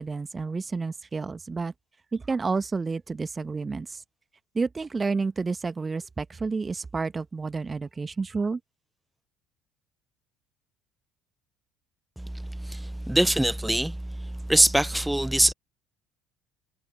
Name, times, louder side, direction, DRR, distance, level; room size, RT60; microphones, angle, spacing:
voice 1, 0.0-1.7 2.1-4.0 4.5-8.6, right 4 dB, 25° right, 1.8 m, -30 dB
voice 2, 12.6-13.9 14.5-15.5, right 1 dB, 5° right, 1.0 m, -22 dB
figure-of-eight pair, 55°, 0 cm